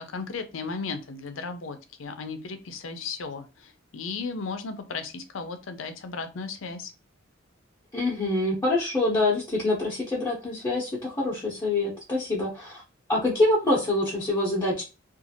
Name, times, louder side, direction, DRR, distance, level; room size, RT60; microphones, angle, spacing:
voice 1, 0.0-6.9, left 4 dB, 75° left, 8 dB, 0.6 m, -35 dB
voice 2, 7.9-12.8 13.1-14.8, left 2 dB, 20° left, -6 dB, 0.8 m, -25 dB
2.7 x 2.4 x 2.7 m, 0.29 s
head